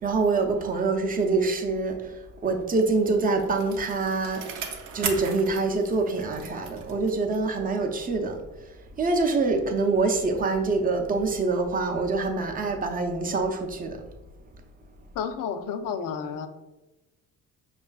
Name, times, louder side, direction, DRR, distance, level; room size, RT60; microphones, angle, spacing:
voice 1, 0.0-2.1 2.4-4.4 4.9-8.4 9.0-14.0, right 3 dB, 25° right, 0.5 m, -25 dB
Bicycle, 2.7-7.6 8.0-8.1, right 6 dB, 90° right, 0.6 m, -38 dB
voice 2, 15.1-16.5, left 6 dB, 65° left, 0.5 m, -31 dB
5.4 x 2.4 x 2.3 m
cardioid pair, 95°, 35 cm